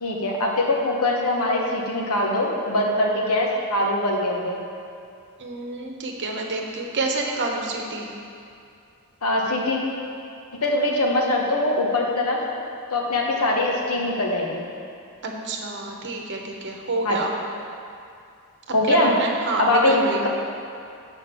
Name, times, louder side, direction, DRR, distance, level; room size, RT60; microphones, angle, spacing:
voice 1, 0.0-4.6 9.2-9.8 10.6-12.4 12.9-14.7 17.0-17.2 18.7-19.1 19.6-19.9, left 1 dB, 75° left, -1 dB, 1.2 m, -22 dB
voice 2, 5.4-8.1 15.2-17.3 18.8-20.3, right 2 dB, 55° right, 1 dB, 1.0 m, -28 dB
7.1 x 5.3 x 6.7 m, 2.5 s
head